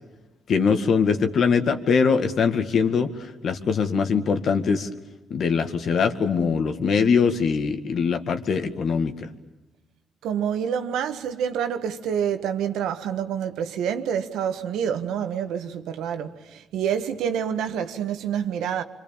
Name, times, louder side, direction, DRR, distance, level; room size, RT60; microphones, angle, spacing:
voice 1, 0.5-3.1 3.4-4.9 5.3-9.3, left 5 dB, 60° left, 2.1 m, -22 dB
voice 2, 10.2-18.8, right 8 dB, 85° right, 1.5 m, -27 dB
26.5 x 25.5 x 7.2 m
cardioid pair, 90°, 0 cm